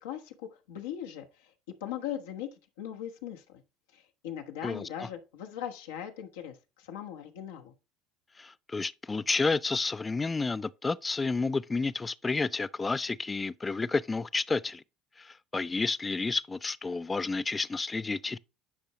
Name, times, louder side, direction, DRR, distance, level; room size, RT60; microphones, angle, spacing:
voice 1, 0.0-1.5 1.8-2.5 2.8-3.6 3.9-7.7, left 10 dB, 90° left, 1.2 m, -39 dB
voice 2, 4.6-5.1 8.4-14.8 15.2-18.4, left 3 dB, 20° left, 0.3 m, -31 dB
10.5 x 4.7 x 3.0 m
supercardioid pair, 95°, 0 cm